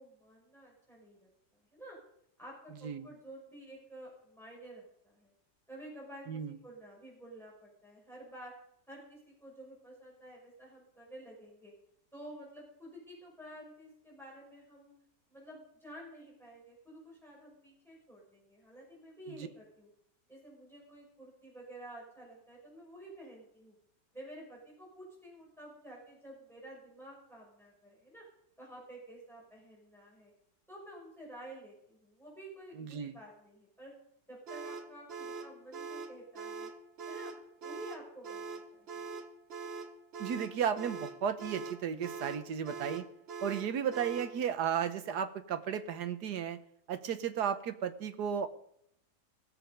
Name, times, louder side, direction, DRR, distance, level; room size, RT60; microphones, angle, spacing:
voice 1, 0.0-2.0 2.4-5.3 5.7-8.5 8.9-11.7 12.1-14.9 15.3-19.9 20.3-23.8 24.1-28.2 28.6-30.3 30.7-33.9 34.3-36.7 37.1-37.3 37.6-39.0, right 1 dB, ahead, -3 dB, 5.6 m, -51 dB
voice 2, 32.8-33.1 40.2-43.1 43.4-46.6 46.9-48.5, right 8 dB, 80° right, 10 dB, 1.5 m, -34 dB
sound 1, 34.5-44.4, right 4 dB, 45° right, 1.1 m, -43 dB
19.0 x 7.9 x 5.2 m, 0.72 s
omnidirectional pair, 1.7 m